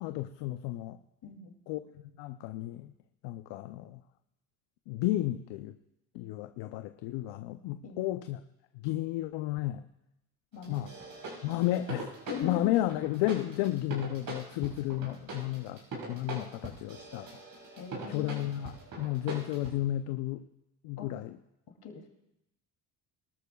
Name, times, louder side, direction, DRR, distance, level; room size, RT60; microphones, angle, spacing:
voice 1, 0.0-1.0 1.7-2.9 3.2-4.0 4.9-5.8 6.1-8.4 8.8-9.9 10.7-10.9 11.4-12.1 12.4-17.3 18.1-20.5 20.8-21.3, left 15 dB, 75° left, 10 dB, 0.7 m, -32 dB
voice 2, 1.2-1.6 7.8-8.0 10.5-10.9 12.3-12.9 17.7-18.4 21.0-21.1 21.8-22.1, left 6 dB, 55° left, 2 dB, 2.9 m, -40 dB
sound 1, 10.6-19.8, right 3 dB, 50° right, 5.8 m, -43 dB
23.0 x 13.5 x 2.4 m, 0.88 s
supercardioid pair, 80°, 45 cm